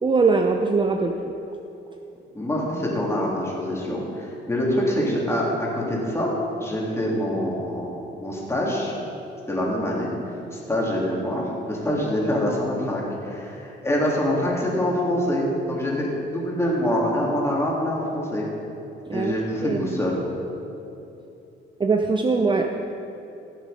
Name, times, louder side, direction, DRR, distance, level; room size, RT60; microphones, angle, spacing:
voice 1, 0.0-1.1 19.1-19.3 19.6-20.0 21.8-22.7, right 4 dB, 25° right, 4 dB, 0.7 m, -21 dB
voice 2, 2.3-6.3 6.6-7.9 8.2-8.9 9.5-10.1 10.5-18.5 19.1-20.2, left 1 dB, 15° left, -4 dB, 3.3 m, -25 dB
16.0 x 7.6 x 5.2 m, 2.9 s
cardioid pair, 90°, 20 cm